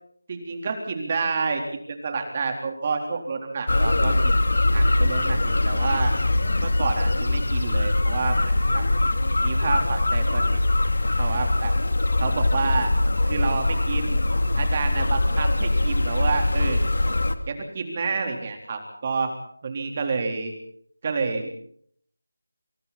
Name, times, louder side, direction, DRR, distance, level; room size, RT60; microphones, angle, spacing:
voice 1, 0.3-4.3 4.7-6.1 6.6-8.9 9.4-10.6 11.2-11.7 12.2-12.9 13.2-14.2 14.5-16.8 17.5-19.3 19.6-20.5 21.0-21.5, right 4 dB, 30° right, 4 dB, 3.9 m, -29 dB
sound 1, 3.7-17.3, left 2 dB, 65° left, 2.8 m, -22 dB
27.5 x 27.5 x 4.3 m, 0.62 s
figure-of-eight pair, 170°, 0 cm